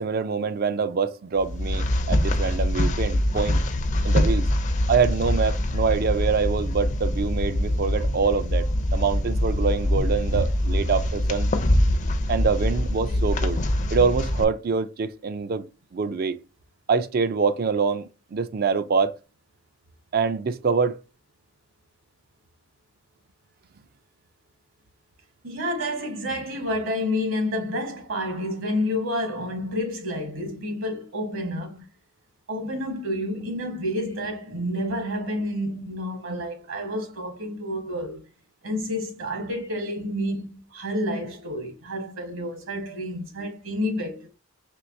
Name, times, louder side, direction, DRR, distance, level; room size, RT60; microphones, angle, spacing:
voice 1, 0.0-3.6 4.0-4.5 4.9-11.5 12.3-13.6 13.9-15.7 15.9-16.4 16.9-19.2 20.1-21.0, right 5 dB, 45° right, 0.3 m, -25 dB
sound 1, 1.4-14.4, left 1 dB, 35° left, 0.5 m, -24 dB
voice 2, 25.4-31.8 32.5-38.2 38.6-44.3, left 1 dB, 70° right, 1.3 m, -29 dB
4.5 x 3.1 x 2.6 m
head